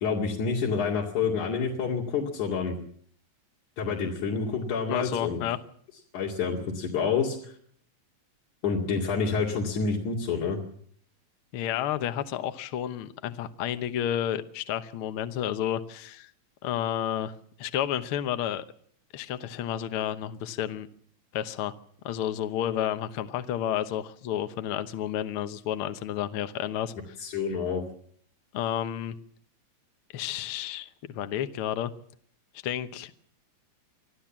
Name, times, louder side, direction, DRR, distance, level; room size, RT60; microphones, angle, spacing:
voice 1, 0.0-2.8 3.8-5.4 6.1-7.5 8.6-10.6 27.2-27.8, left 5 dB, 90° left, -3 dB, 3.8 m, -28 dB
voice 2, 4.9-5.6 11.5-16.3 16.6-17.3 17.6-18.6 19.1-20.9 21.3-21.7 22.0-27.2 28.5-29.1 30.1-30.9 31.1-31.9 32.6-33.1, left 10 dB, 60° left, 10 dB, 1.6 m, -31 dB
25.5 x 14.5 x 7.4 m, 0.62 s
omnidirectional pair, 3.3 m